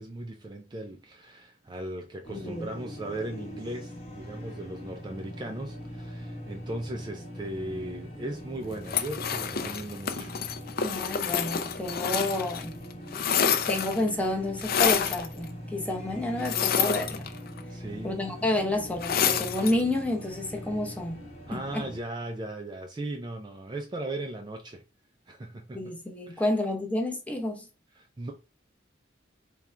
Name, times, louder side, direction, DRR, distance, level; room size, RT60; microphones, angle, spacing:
voice 1, 0.0-10.4 17.7-18.1 21.5-24.8 25.3-25.9 26.3-26.4 28.0-28.3, right 1 dB, 25° right, 0.4 m, -37 dB
sound 1, 2.2-22.0, equal, 35° left, 1.0 m, -42 dB
voice 2, 2.3-2.7 10.8-12.8 13.7-17.3 18.0-21.2 21.5-21.9 25.7-27.7, left 1 dB, 10° left, 0.7 m, -30 dB
sound 2, 8.9-12.6 12.9-14.1 14.6-15.3 16.4-17.6 19.0-19.8, left 7 dB, 55° left, 0.4 m, -28 dB
3.7 x 2.3 x 4.2 m
head